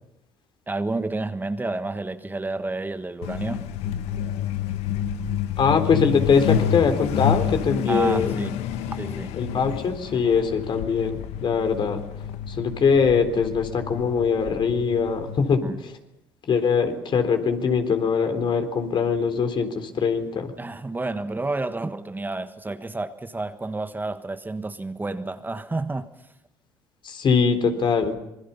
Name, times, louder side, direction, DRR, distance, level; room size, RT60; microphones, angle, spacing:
voice 1, 0.7-3.6 7.9-8.6 9.0-9.3 15.6-15.8 20.6-26.1, right 2 dB, 15° right, 9 dB, 1.5 m, -30 dB
Truck, 3.2-15.5, left 9 dB, 70° left, 1.5 m, -29 dB
voice 2, 5.6-8.4 9.4-12.0 12.5-15.6 16.5-20.5 27.0-28.1, left 5 dB, 50° left, 7 dB, 3.8 m, -22 dB
26.5 x 21.5 x 5.8 m, 0.89 s
hypercardioid pair, 70°, 11 cm